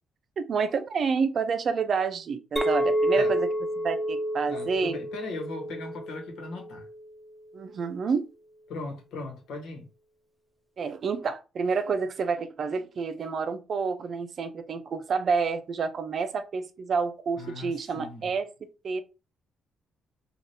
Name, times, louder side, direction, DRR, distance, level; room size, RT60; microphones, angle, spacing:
voice 1, 0.4-3.5 3.8-5.0 7.5-8.3 10.8-19.0, right 5 dB, 50° right, 0.5 m, -29 dB
Chink clink, 2.6-7.0, equal, 5° right, 0.4 m, -29 dB
voice 2, 4.5-6.9 8.7-9.9 17.4-18.3, left 3 dB, 85° left, 1.1 m, -38 dB
3.2 x 2.4 x 2.7 m
cardioid pair, 90°, 0 cm